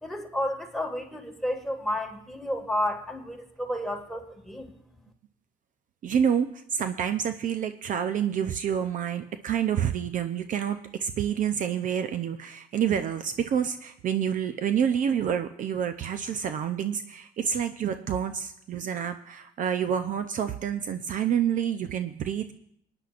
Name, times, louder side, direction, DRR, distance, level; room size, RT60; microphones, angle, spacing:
voice 1, 0.0-4.7, left 1 dB, ahead, 1 dB, 1.8 m, -31 dB
voice 2, 6.0-22.5, right 8 dB, 50° right, 9 dB, 0.6 m, -28 dB
22.5 x 9.8 x 2.5 m, 0.72 s
cardioid pair, 110°, 17 cm